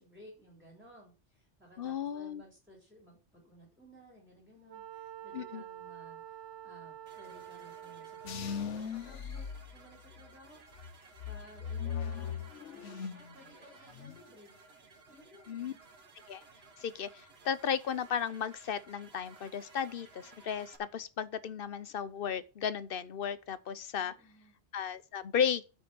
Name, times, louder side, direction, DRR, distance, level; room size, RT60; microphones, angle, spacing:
voice 1, 0.0-14.5 15.1-15.8 24.0-24.6, equal, ahead, 3.8 m, -57 dB
voice 2, 1.8-2.4 5.3-5.6 15.5-15.7 16.3-16.4 16.8-24.1 24.7-25.6, left 8 dB, 55° left, 0.8 m, -35 dB
Wind instrument woodwind instrument, 4.7-8.8, right 10 dB, 85° right, 1.0 m, -48 dB
sound 1, 7.1-20.8, right 4 dB, 60° right, 1.6 m, -58 dB
sound 2, 8.2-10.3 10.7-13.3 13.6-14.2, left 7 dB, 85° left, 1.2 m, -39 dB
8.3 x 6.2 x 6.9 m
omnidirectional pair, 1.2 m